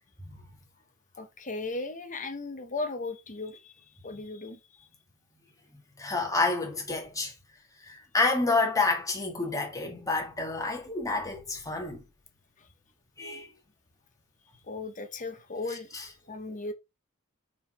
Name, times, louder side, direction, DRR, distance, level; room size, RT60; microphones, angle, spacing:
voice 1, 1.2-3.7 4.0-4.9 12.6-12.7 14.6-15.9 16.3-16.7, left 3 dB, 35° left, 1.2 m, -36 dB
voice 2, 6.0-7.3 7.8-12.0 13.2-13.5, left 3 dB, 15° left, 1.8 m, -29 dB
5.5 x 4.7 x 4.4 m
head